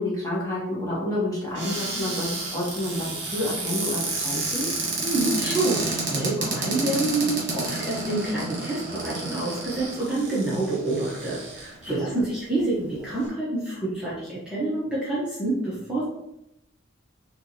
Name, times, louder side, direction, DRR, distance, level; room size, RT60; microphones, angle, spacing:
voice 1, 0.0-4.7 12.1-12.3, left 1 dB, 15° left, -7 dB, 1.4 m, -29 dB
Cupboard open or close, 1.5-11.9 12.6-12.7 12.9-13.3, right 3 dB, 55° right, 1.5 m, -30 dB
voice 2, 5.0-16.1, right 2 dB, 5° right, -10 dB, 1.0 m, -27 dB
4.6 x 3.4 x 2.8 m, 0.84 s
head